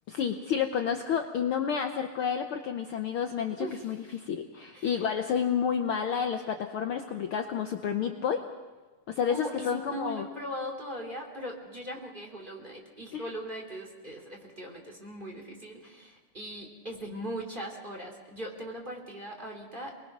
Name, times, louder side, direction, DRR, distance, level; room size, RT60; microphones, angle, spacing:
voice 1, 0.1-8.4 9.1-10.3 13.1-13.3, left 7 dB, 80° left, 5 dB, 1.2 m, -30 dB
voice 2, 4.7-5.0 9.3-20.1, equal, 15° right, 0 dB, 2.7 m, -39 dB
28.5 x 20.5 x 6.0 m, 1.3 s
omnidirectional pair, 3.7 m